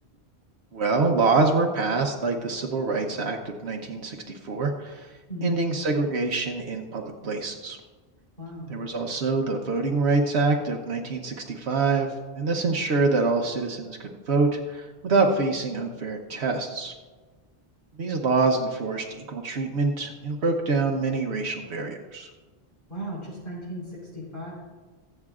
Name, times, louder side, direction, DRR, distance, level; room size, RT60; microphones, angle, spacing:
voice 1, 0.7-5.1 5.4-7.8 8.7-16.9 18.0-22.3, right 3 dB, 80° right, 2 dB, 1.1 m, -25 dB
voice 2, 5.3-5.6 8.4-8.8 22.9-24.5, equal, 50° left, -5 dB, 4.3 m, -36 dB
21.5 x 7.9 x 2.4 m, 1.3 s
omnidirectional pair, 1.1 m